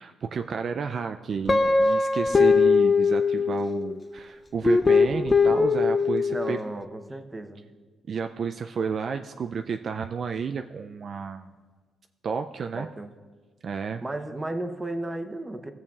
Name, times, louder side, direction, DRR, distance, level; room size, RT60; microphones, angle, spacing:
voice 1, 0.0-6.6 8.1-11.5 12.2-12.9 13.6-14.0, right 6 dB, 50° right, 7 dB, 0.3 m, -31 dB
Guitar, 1.5-3.9 4.6-6.6, left 4 dB, 25° left, 0.4 m, -21 dB
voice 2, 6.3-7.7 12.7-13.1 14.0-15.7, right 1 dB, 15° right, 7 dB, 0.8 m, -34 dB
19.5 x 7.0 x 2.4 m, 1.5 s
cardioid pair, 90°, 0 cm